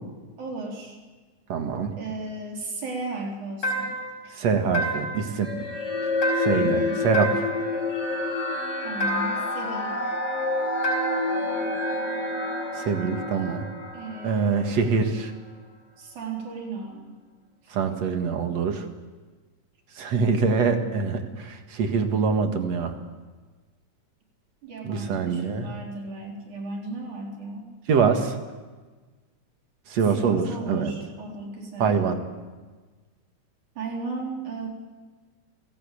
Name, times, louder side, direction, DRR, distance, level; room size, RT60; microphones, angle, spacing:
voice 1, 0.4-1.0 1.9-3.9 6.6-7.0 8.8-10.1 13.4-13.5 13.9-14.8 16.0-17.0 17.6-17.7 24.6-27.7 30.1-32.0 33.8-34.7, right 3 dB, 75° right, 0 dB, 5.4 m, -35 dB
voice 2, 1.5-1.9 4.3-5.7 6.4-7.4 12.8-13.6 14.2-15.3 17.7-18.9 20.0-22.9 24.8-25.7 27.9-28.4 29.9-30.9 31.8-32.2, right 5 dB, 60° right, 6 dB, 2.8 m, -24 dB
sound 1, 3.6-4.2 4.7-5.3 6.2-6.8 7.1-7.7 9.0-9.5 10.8-11.4, right 1 dB, 30° left, 5.1 m, -29 dB
sound 2, 5.4-14.9, left 2 dB, 50° left, 4.4 m, -28 dB
29.5 x 17.0 x 8.5 m, 1.4 s
omnidirectional pair, 3.4 m